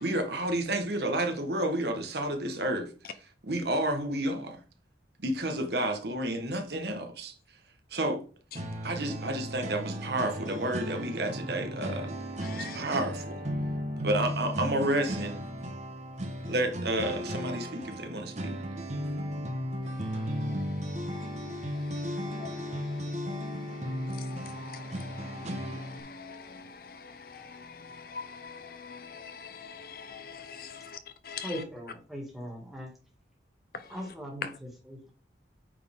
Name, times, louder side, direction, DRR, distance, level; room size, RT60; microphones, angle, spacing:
voice 1, 0.0-2.9 3.4-4.6 5.2-7.3 7.9-8.2 8.8-12.1 12.5-13.4 14.0-15.5 16.4-18.6, right 1 dB, 60° right, 1.3 m, -30 dB
sound 1, 8.5-26.0, equal, 40° right, 1.1 m, -35 dB
voice 2, 12.4-12.8 19.9-31.0 31.2-31.5 33.7-33.9, left 5 dB, 50° left, 0.6 m, -45 dB
voice 3, 31.4-32.9 33.9-35.1, equal, ahead, 2.1 m, -40 dB
9.1 x 4.4 x 3.6 m
head